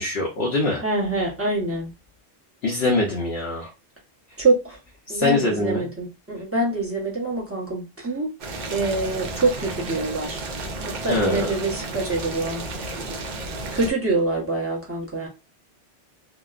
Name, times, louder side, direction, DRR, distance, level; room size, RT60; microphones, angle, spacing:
voice 1, 0.0-0.8 2.6-3.7 5.1-5.9 11.1-11.5, left 2 dB, 60° left, 0.9 m, -23 dB
voice 2, 0.8-1.9 4.4-4.8 5.1-10.4 10.8-12.6 13.7-15.3, right 2 dB, 15° right, 0.7 m, -25 dB
Boiling, 8.4-13.9, right 2 dB, 55° right, 0.5 m, -32 dB
2.8 x 2.0 x 2.3 m
omnidirectional pair, 1.3 m